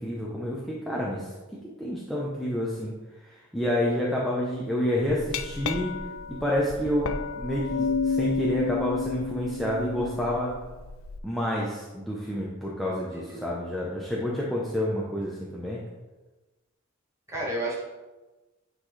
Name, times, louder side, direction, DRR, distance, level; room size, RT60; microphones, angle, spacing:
voice 1, 0.0-1.3 1.8-2.9 3.2-5.9 6.3-10.5 11.2-15.8, equal, ahead, -5 dB, 0.7 m, -29 dB
Glass, 5.0-11.2, left 5 dB, 70° left, 0.4 m, -31 dB
voice 2, 13.1-13.5 17.3-17.8, right 1 dB, 15° right, -5 dB, 1.6 m, -32 dB
8.7 x 3.9 x 3.3 m, 1.2 s
head